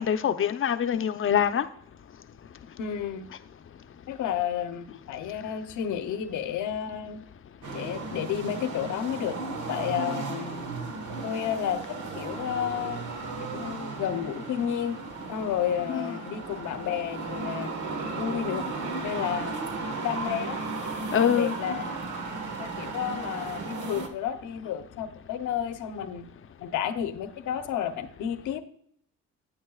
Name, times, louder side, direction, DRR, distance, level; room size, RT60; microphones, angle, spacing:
voice 1, 0.0-1.7 15.9-16.1 21.1-21.5, left 9 dB, 45° left, 10 dB, 0.7 m, -24 dB
voice 2, 2.8-3.3 4.1-7.2 7.7-9.3 9.7-10.7 11.2-13.1 13.5-15.0 15.3-17.7 18.2-18.6 19.0-19.5 20.0-20.6 21.2-21.8 22.6-26.3 26.6-28.6, left 9 dB, 85° left, 10 dB, 0.9 m, -31 dB
sound 1, 7.6-24.1, right 3 dB, 70° right, 1.5 m, -35 dB
9.8 x 8.7 x 2.4 m, 0.64 s
cardioid pair, 90°, 30 cm